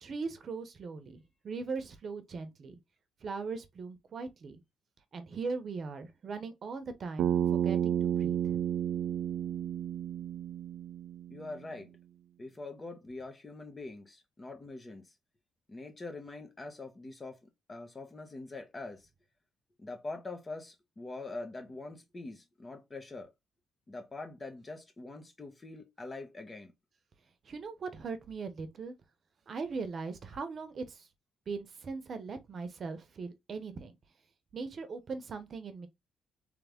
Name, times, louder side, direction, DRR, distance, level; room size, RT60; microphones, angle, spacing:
voice 1, 0.0-2.7 3.2-4.6 5.1-8.6 27.4-28.9 29.5-31.1 31.5-33.9 34.5-35.9, right 4 dB, 50° right, 0.9 m, -40 dB
Bass guitar, 7.2-11.5, right 9 dB, 75° right, 0.4 m, -31 dB
voice 2, 11.3-11.9 12.4-15.1 15.7-19.1 19.8-23.3 23.9-26.7, left 3 dB, 25° left, 1.2 m, -44 dB
3.5 x 3.4 x 3.5 m
cardioid pair, 90°, 0 cm